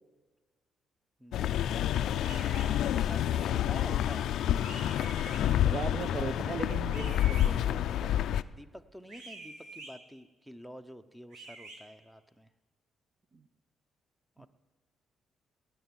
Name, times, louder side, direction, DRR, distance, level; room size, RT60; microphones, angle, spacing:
voice 1, 1.2-4.3 8.4-12.5 14.4-14.5, equal, 5° right, 10 dB, 0.8 m, -48 dB
sound 1, 1.3-8.4, left 11 dB, 75° left, 0.4 m, -29 dB
sound 2, 2.2-2.7 4.6-5.4 6.9-7.5 9.1-9.9 11.3-11.8, right 3 dB, 90° right, 2.9 m, -46 dB
voice 2, 5.6-8.1 13.3-13.4 14.4-14.5, right 5 dB, 40° right, 11 dB, 0.8 m, -38 dB
20.0 x 6.8 x 9.0 m, 1.3 s
cardioid pair, 90°, 0 cm